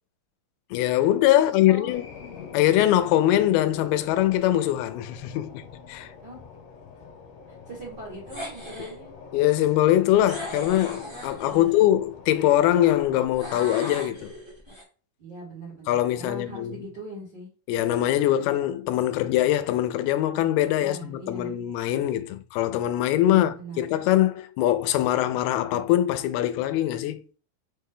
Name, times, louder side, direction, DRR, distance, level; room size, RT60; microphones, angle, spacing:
voice 1, 0.7-2.1 2.5-5.6 5.9-6.1 9.3-14.3 15.9-16.8 17.7-27.2, left 13 dB, 90° left, 2.5 m, -22 dB
voice 2, 1.3-1.9 6.2-6.4 7.6-9.1 11.5-11.7 15.2-17.5 20.8-21.5 23.2-23.8, right 2 dB, 80° right, 0.9 m, -41 dB
sound 1, 1.9-13.3, left 6 dB, 70° left, 2.3 m, -45 dB
sound 2, 8.3-9.0 10.2-11.9 13.4-14.8, equal, 30° right, 0.5 m, -38 dB
6.1 x 2.2 x 3.5 m
omnidirectional pair, 4.3 m